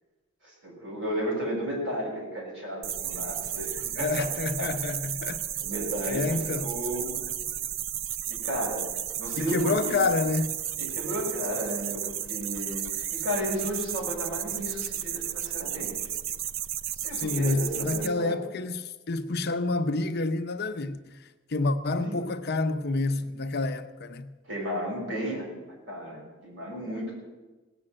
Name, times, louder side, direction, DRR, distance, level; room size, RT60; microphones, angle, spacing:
voice 1, 0.4-4.1 4.6-4.7 5.6-7.2 8.3-8.9 9.2-10.0 10.8-12.0 12.3-15.9 17.0-18.4 22.0-22.3 24.4-25.5 25.9-27.1, equal, 65° right, 6.1 m, -33 dB
sound 1, 2.8-18.1, right 10 dB, 85° right, 0.5 m, -33 dB
voice 2, 4.0-5.4 6.0-6.7 9.4-10.6 17.1-24.3, left 3 dB, 55° left, 0.7 m, -28 dB
17.5 x 7.2 x 8.8 m
head